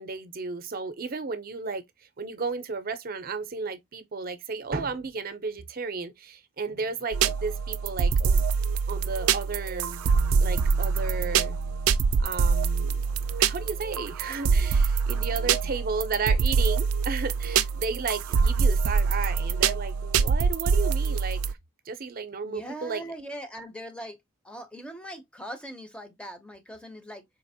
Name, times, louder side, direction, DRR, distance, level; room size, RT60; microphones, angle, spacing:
voice 1, 0.0-1.8 2.2-8.5 8.9-10.1 10.4-11.6 12.2-13.0 13.4-21.6 21.9-23.0, right 4 dB, 45° right, 0.6 m, -33 dB
sound 1, 7.1-21.5, right 5 dB, 90° right, 0.4 m, -25 dB
Bass guitar, 10.1-16.4, left 7 dB, 60° left, 0.4 m, -49 dB
voice 2, 22.4-24.2 24.4-27.3, equal, 5° left, 0.5 m, -40 dB
4.1 x 2.9 x 2.7 m
head